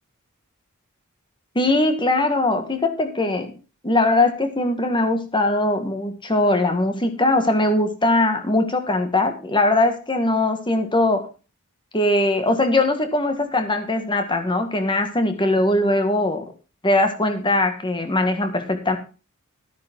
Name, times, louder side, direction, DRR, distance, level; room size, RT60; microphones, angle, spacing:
voice 1, 1.5-3.6 3.8-11.3 11.9-16.4 16.8-19.0, left 2 dB, 20° left, 7 dB, 1.7 m, -21 dB
13.5 x 9.3 x 3.7 m, 0.34 s
head